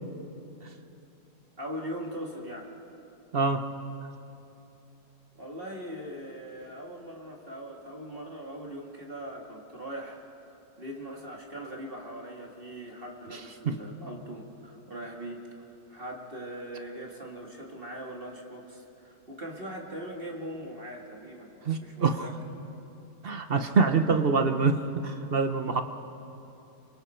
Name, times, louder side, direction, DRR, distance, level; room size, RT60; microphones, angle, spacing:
voice 1, 1.6-2.7 5.3-10.2 10.8-15.5 15.9-22.3, equal, 30° right, -1 dB, 2.2 m, -40 dB
voice 2, 3.3-3.6 13.6-13.8 21.7-22.3 23.2-25.8, right 4 dB, 45° right, 7 dB, 0.8 m, -25 dB
29.5 x 25.0 x 4.4 m, 2.9 s
omnidirectional pair, 1.9 m